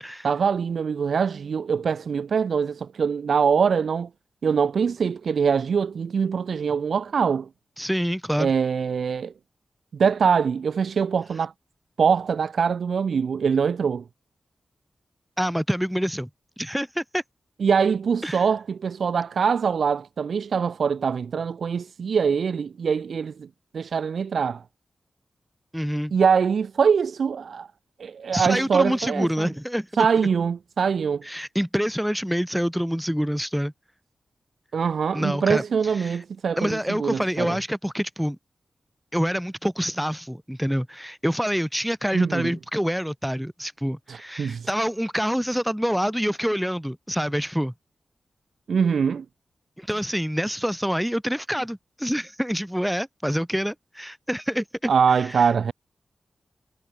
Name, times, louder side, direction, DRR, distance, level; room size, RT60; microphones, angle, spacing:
voice 1, 0.2-4.1 4.4-7.5 8.4-9.3 9.9-11.5 12.0-14.0 17.6-23.5 23.7-24.6 26.1-27.7 28.0-29.5 30.0-31.2 34.7-37.6 42.1-42.5 44.1-44.7 48.7-49.3 54.9-55.7, right 6 dB, 75° right, 1.8 m, -23 dB
voice 2, 7.8-8.5 15.4-16.3 16.6-17.2 18.2-18.4 25.7-26.1 28.3-30.1 31.2-33.7 35.1-36.2 36.6-38.4 39.1-47.7 49.8-55.5, equal, ahead, 2.9 m, -26 dB
wide cardioid pair, 125°, 0 cm